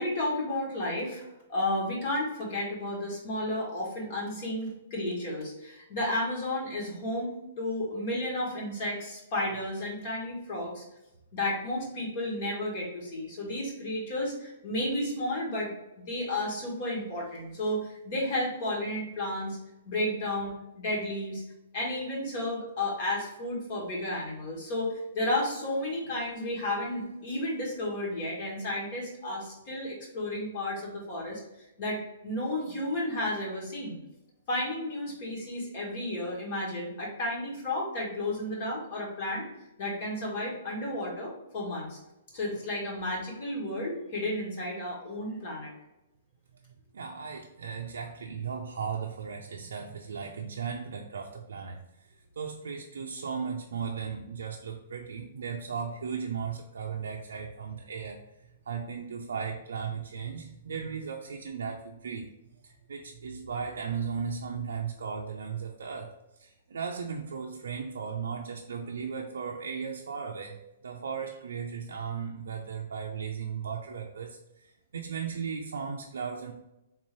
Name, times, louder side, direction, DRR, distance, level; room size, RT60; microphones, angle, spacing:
voice 1, 0.0-10.8 11.3-19.6 19.8-21.4 21.7-31.4 31.8-34.0 34.5-39.4 39.8-42.0 42.3-45.7, left 1 dB, 45° left, -3 dB, 1.5 m, -32 dB
voice 2, 46.7-51.8 52.4-58.2 58.7-62.3 62.6-70.6 70.8-76.5, right 6 dB, 85° right, 0 dB, 0.4 m, -36 dB
3.6 x 2.7 x 3.0 m, 0.91 s
hypercardioid pair, 145°, 0 cm